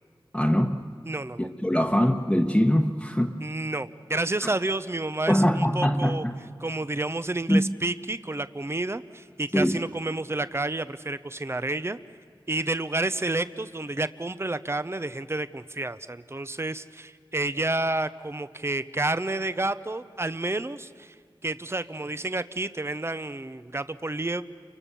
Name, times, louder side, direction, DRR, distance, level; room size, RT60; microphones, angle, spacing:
voice 1, 0.3-0.9 1.4-3.4 4.4-4.5 5.3-6.4 7.5-7.7 9.5-9.8, equal, 10° left, 2 dB, 1.1 m, -23 dB
voice 2, 1.0-1.5 1.7-1.8 3.4-6.2 6.6-12.0 12.5-21.1 21.4-24.4, right 2 dB, 30° right, 13 dB, 0.7 m, -30 dB
29.5 x 24.5 x 7.0 m, 2.1 s
wide cardioid pair, 55°, 9 cm